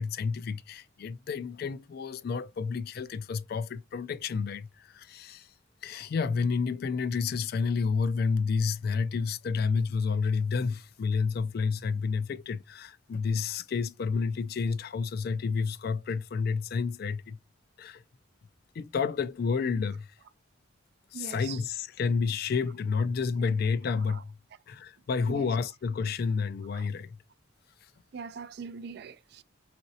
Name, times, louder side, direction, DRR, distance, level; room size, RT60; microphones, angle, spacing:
voice 1, 0.0-5.5 5.8-17.4 17.8-18.0 18.8-20.1 21.1-24.4 24.7-27.2, left 5 dB, 50° left, 0.3 m, -30 dB
voice 2, 21.1-21.6 24.1-24.2 25.3-25.5 26.7-26.9 28.1-29.4, right 6 dB, 55° right, 0.3 m, -41 dB
4.1 x 3.8 x 2.7 m
head